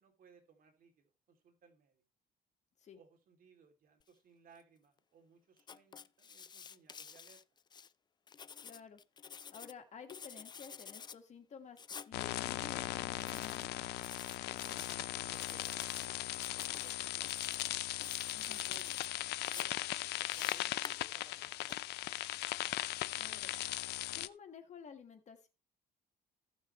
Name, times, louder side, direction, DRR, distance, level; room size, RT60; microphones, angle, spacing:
voice 1, 0.0-2.0 2.9-7.4 14.3-17.6 18.3-21.8 22.1-22.4, right 5 dB, 55° right, 2.8 m, -63 dB
Writing, 5.6-7.9 8.3-9.7 10.1-11.2 11.8-12.1 13.2-13.7 14.0-14.9 15.3-16.1 16.3-16.9 17.2-17.7 18.0-19.1 19.4-21.7, left 6 dB, 25° left, 0.4 m, -49 dB
voice 2, 8.6-9.0 9.5-11.8 12.1-13.7 18.3-18.6 23.2-23.5 24.1-25.5, left 6 dB, 45° left, 1.6 m, -52 dB
sound 1, 12.1-24.3, left 16 dB, 75° left, 0.5 m, -38 dB
15.0 x 6.3 x 3.1 m
cardioid pair, 110°, 17 cm